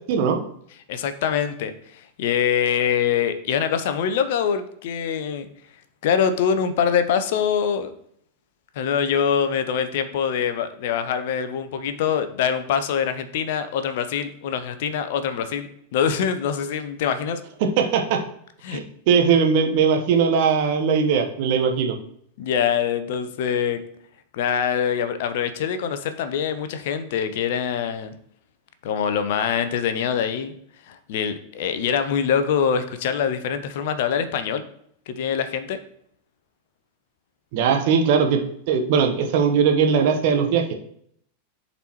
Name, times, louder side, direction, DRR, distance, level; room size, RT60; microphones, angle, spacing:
voice 1, 0.1-0.4 17.8-18.2 18.7-21.9 37.5-38.4 38.7-40.6, right 6 dB, 50° right, 3 dB, 1.0 m, -19 dB
voice 2, 0.9-5.5 6.0-7.9 8.8-17.4 18.6-18.8 22.4-23.8 24.3-28.1 28.8-30.5 30.9-34.6 35.1-35.8, left 7 dB, 50° left, 10 dB, 0.6 m, -24 dB
10.0 x 4.1 x 3.0 m, 0.68 s
figure-of-eight pair, 90°, 0 cm